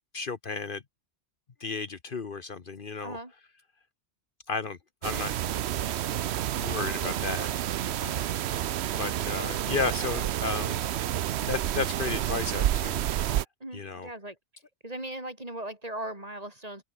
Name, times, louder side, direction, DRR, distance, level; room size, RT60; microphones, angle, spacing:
voice 1, 0.1-0.8 1.6-3.2 4.5-5.3 5.7-5.8 6.6-7.5 8.0-8.3 9.0-10.8 11.5-13.0 13.7-14.1, left 4 dB, 55° left, 1.3 m, -33 dB
voice 2, 3.0-3.3 7.0-7.2 13.6-14.4 14.8-16.8, right 1 dB, 35° right, 4.7 m, -38 dB
sound 1, 5.0-13.5, right 11 dB, 75° right, 0.9 m, -29 dB
open air
omnidirectional pair, 1.1 m